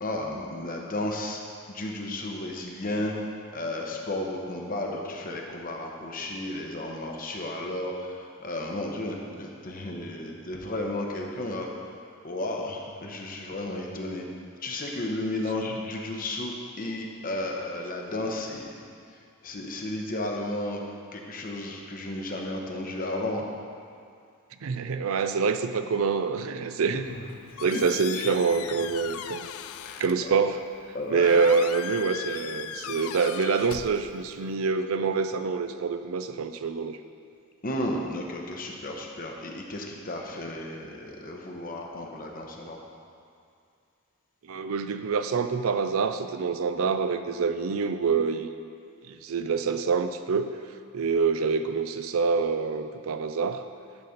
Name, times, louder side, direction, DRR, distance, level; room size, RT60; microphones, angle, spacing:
voice 1, 0.0-1.4 1.7-3.1 3.5-11.9 12.2-14.2 14.6-18.8 19.1-20.8 21.1-23.4 26.9-27.8 28.2-28.3 29.8-30.3 30.9-31.5 37.6-42.8, left 1 dB, 40° left, 1 dB, 1.0 m, -33 dB
voice 2, 24.6-27.1 27.6-29.5 30.0-30.6 31.1-37.0 44.4-48.5 49.0-50.5 50.9-53.6, right 5 dB, 70° right, 9 dB, 0.5 m, -26 dB
Squeak, 27.1-34.5, left 10 dB, 75° left, 0.3 m, -39 dB
10.5 x 4.2 x 6.5 m, 2.4 s
head